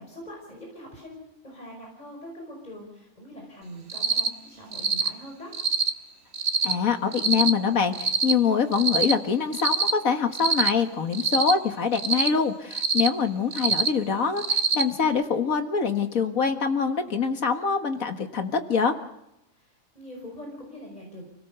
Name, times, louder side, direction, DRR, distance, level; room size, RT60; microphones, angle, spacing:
voice 1, 0.0-5.5 19.6-21.2, equal, 30° left, 0 dB, 5.6 m, -43 dB
Cricket, 3.9-4.3 4.7-5.1 5.5-5.9 6.3-6.7 7.1-7.5 7.9-8.3 8.7-9.1 9.5-9.9 10.3-10.7 11.1-11.5 11.9-12.3 12.7-13.1 13.5-13.9 14.4-14.8, right 5 dB, 75° right, 1.8 m, -24 dB
voice 2, 6.6-18.9, left 6 dB, 80° left, 6 dB, 2.1 m, -24 dB
29.0 x 17.5 x 6.9 m, 0.85 s
omnidirectional pair, 1.4 m